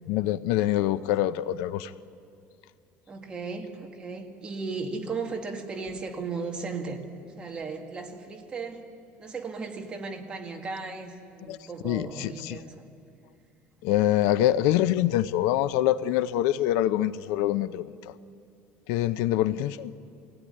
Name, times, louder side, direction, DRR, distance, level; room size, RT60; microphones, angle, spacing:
voice 1, 0.1-1.9 11.5-11.6 11.8-12.6 13.8-17.9 18.9-19.9, left 13 dB, 90° left, 15 dB, 0.6 m, -25 dB
voice 2, 3.1-7.0 7.4-8.9 9.2-12.8, right 4 dB, 20° right, 1 dB, 2.0 m, -36 dB
22.0 x 16.5 x 9.9 m, 2.4 s
cardioid pair, 160°, 5 cm